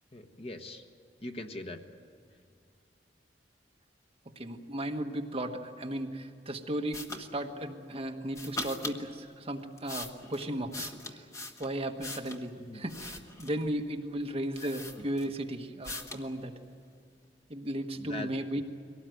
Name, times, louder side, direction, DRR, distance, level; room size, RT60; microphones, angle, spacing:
voice 1, 0.1-0.8 1.2-1.8 10.8-10.9 12.6-12.8 14.6-14.7 18.0-18.3 18.5-18.6, left 2 dB, 35° left, 5 dB, 1.3 m, -41 dB
voice 2, 4.3-11.2 11.6-16.5 17.5-18.6, right 1 dB, 35° right, 3 dB, 1.4 m, -35 dB
sound 1, 6.9-7.2 8.3-9.0 9.6-12.4 12.9-13.7 14.2-14.3 14.5-15.4 15.8-16.3, left 2 dB, 20° left, 1.4 m, -41 dB
23.5 x 18.5 x 9.3 m, 2.4 s
head